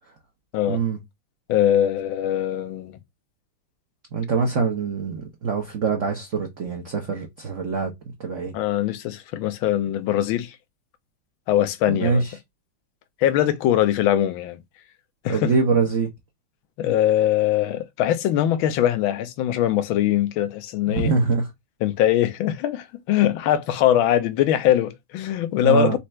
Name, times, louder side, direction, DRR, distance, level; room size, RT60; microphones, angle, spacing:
voice 1, 0.7-1.0 4.1-7.9 8.2-8.5 11.9-12.3 15.3-16.1 20.9-21.5 25.6-26.0, right 5 dB, 55° right, 0.8 m, -24 dB
voice 2, 1.5-3.0 8.5-10.6 11.5-12.2 13.2-14.6 15.2-15.5 16.8-21.1 21.8-26.0, left 12 dB, 75° left, 1.5 m, -22 dB
4.4 x 2.5 x 4.3 m
omnidirectional pair, 2.3 m